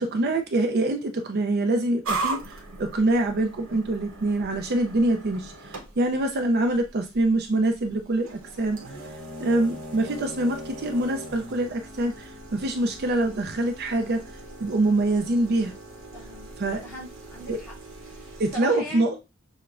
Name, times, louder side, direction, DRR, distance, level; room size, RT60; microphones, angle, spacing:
voice 1, 0.0-8.8 9.4-14.2 14.6-15.7 16.6-16.8 17.5-17.6 18.4-19.2, right 2 dB, 50° right, 5 dB, 0.5 m, -25 dB
sound 1, 2.0-18.5, right 2 dB, 80° right, 1.0 m, -39 dB
voice 2, 16.1-16.5 16.8-17.7 18.1-19.2, equal, 15° left, -6 dB, 2.5 m, -40 dB
6.6 x 2.2 x 2.5 m, 0.26 s
head